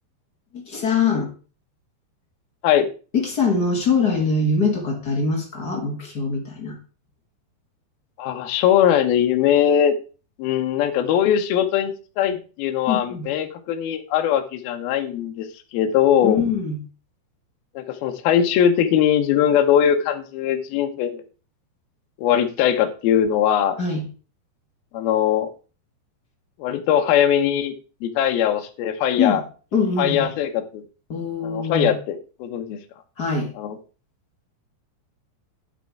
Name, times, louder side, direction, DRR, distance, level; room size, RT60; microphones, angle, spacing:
voice 1, 0.5-1.3 3.1-6.8 12.9-13.3 16.2-16.8 23.8-24.0 29.2-29.4 29.7-30.3 31.1-31.9 33.2-33.5, left 4 dB, 45° left, 1 dB, 1.3 m, -23 dB
voice 2, 8.2-9.9 10.4-15.5 15.7-16.4 17.8-21.2 22.2-23.8 24.9-25.5 26.6-27.7 28.0-29.4 30.0-30.8 31.4-32.8 33.6-33.8, left 9 dB, 70° left, 5 dB, 2.7 m, -20 dB
9.5 x 6.8 x 4.7 m, 0.35 s
omnidirectional pair, 4.9 m